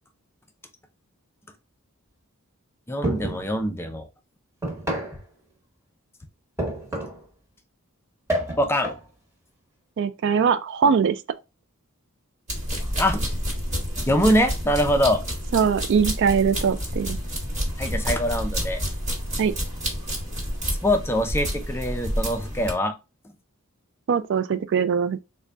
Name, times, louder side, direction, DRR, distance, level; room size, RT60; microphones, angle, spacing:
voice 1, 2.9-4.1 8.6-8.9 13.0-13.2 14.1-15.2 17.8-18.8 20.6-22.9, equal, 10° left, 0.4 m, -23 dB
sound 1, 3.0-3.5 4.6-5.2 6.6-7.2 8.3-9.1, right 1 dB, 15° right, 1.0 m, -28 dB
voice 2, 10.0-11.2 15.5-17.2 19.4-19.5 24.1-25.2, right 6 dB, 55° right, 0.3 m, -21 dB
sound 2, 12.5-22.7, equal, 35° right, 1.2 m, -29 dB
3.8 x 2.2 x 3.3 m
head